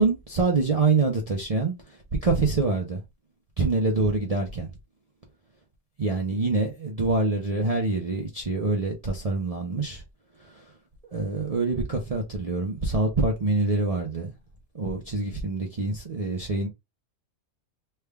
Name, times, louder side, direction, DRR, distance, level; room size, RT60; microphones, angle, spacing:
voice 1, 0.0-3.0 3.6-4.7 6.0-10.0 10.4-10.6 11.1-14.3 14.7-16.7, right 3 dB, 50° right, 0.4 m, -25 dB
3.3 x 2.2 x 3.3 m
omnidirectional pair, 1.5 m